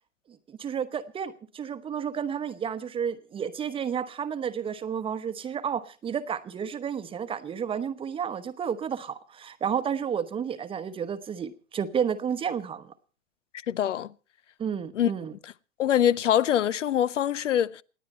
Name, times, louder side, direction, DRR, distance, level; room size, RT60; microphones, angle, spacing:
voice 1, 0.5-12.9 14.6-15.3, right 7 dB, 15° right, 0.9 m, -31 dB
voice 2, 13.7-14.1 14.9-15.1 15.8-17.8, left 10 dB, 75° left, 0.7 m, -24 dB
28.0 x 9.4 x 4.3 m
hypercardioid pair, 115°, 37 cm